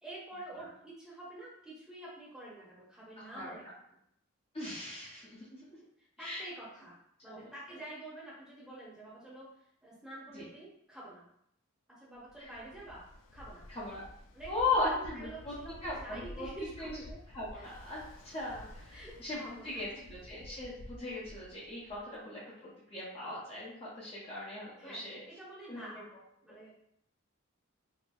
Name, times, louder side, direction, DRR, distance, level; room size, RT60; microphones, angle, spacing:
voice 1, 0.0-3.6 6.2-6.9 7.2-9.5 9.8-11.3 12.0-13.0 13.3-13.7 14.3-17.1 17.5-17.7 18.9-19.8 24.8-25.0 25.4-26.0 26.4-26.7, right 1 dB, 5° right, -8 dB, 0.9 m, -47 dB
voice 2, 3.2-3.6 4.5-5.8 6.2-6.4 7.3-7.5 10.3-10.4 13.7-14.0 14.5-15.5 15.8-16.5 16.8-22.4 22.9-25.2 25.7-25.9, left 2 dB, 30° left, -8 dB, 0.6 m, -38 dB
Ocean, 12.3-22.2, left 1 dB, 65° left, 0.4 m, -51 dB
4.2 x 2.1 x 2.3 m, 0.72 s
head